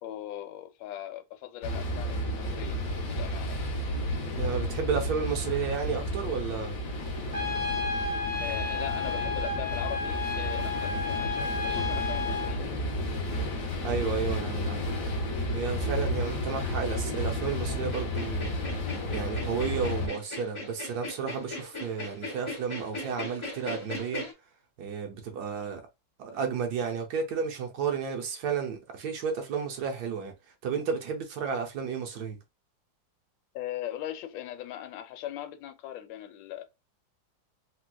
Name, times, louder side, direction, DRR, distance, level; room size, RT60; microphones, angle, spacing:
voice 1, 0.0-2.8 3.1-3.7 8.4-12.7 16.1-16.3 33.5-36.6, left 12 dB, 90° left, 1.3 m, -40 dB
sound 1, 1.6-20.1, left 1 dB, 60° left, 1.1 m, -32 dB
voice 2, 4.3-6.8 13.8-14.9 15.5-18.5 19.1-24.3 24.8-25.8 26.2-30.3 30.6-32.4, right 6 dB, 65° right, 1.1 m, -32 dB
Trumpet, 7.3-12.5, left 4 dB, 10° right, 0.8 m, -32 dB
sound 2, 17.9-24.3, left 2 dB, 30° left, 0.5 m, -38 dB
4.3 x 2.2 x 2.2 m
omnidirectional pair, 2.0 m